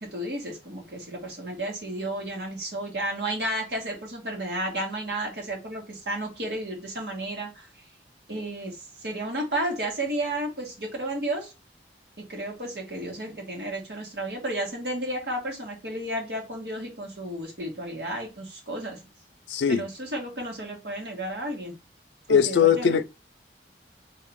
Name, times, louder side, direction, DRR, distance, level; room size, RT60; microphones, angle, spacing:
voice 1, 0.0-7.7 8.3-11.5 12.2-19.0 19.7-21.7 22.3-23.0, right 1 dB, 65° right, 1.7 m, -32 dB
voice 2, 19.5-19.8 22.3-23.0, left 7 dB, 85° left, 0.4 m, -20 dB
3.7 x 2.8 x 3.6 m
head